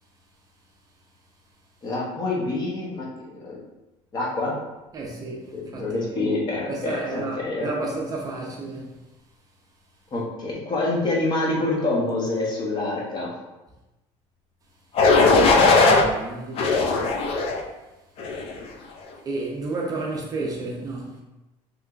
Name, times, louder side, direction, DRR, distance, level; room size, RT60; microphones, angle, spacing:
voice 1, 1.8-3.6 4.1-4.5 5.5-7.7 10.1-13.3, left 2 dB, 30° left, 0.8 m, -26 dB
voice 2, 4.9-6.2 6.7-9.0 15.4-16.8 19.3-21.2, right 3 dB, 30° right, 0.5 m, -32 dB
sound 1, 15.0-16.0 16.6-17.6 18.2-18.6, left 3 dB, 45° left, 0.4 m, -18 dB
3.3 x 2.9 x 2.4 m
cardioid pair, 140°, 13 cm